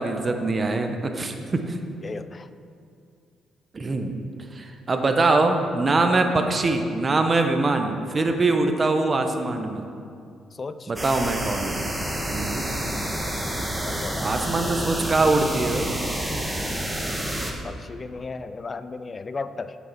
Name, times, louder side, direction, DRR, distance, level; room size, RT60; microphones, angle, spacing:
voice 1, 0.0-1.3 1.7-1.8 3.7-4.1 4.5-9.9 10.9-11.8 12.3-12.7 14.2-15.9, right 3 dB, 35° right, 5 dB, 0.8 m, -23 dB
voice 2, 2.0-2.5 10.5-10.9 13.8-14.4 17.6-19.8, left 4 dB, 35° left, 12 dB, 0.4 m, -35 dB
sound 1, 11.0-17.5, right 1 dB, 10° right, 1.2 m, -29 dB
7.5 x 6.2 x 5.6 m, 2.4 s
cardioid pair, 90°, 0 cm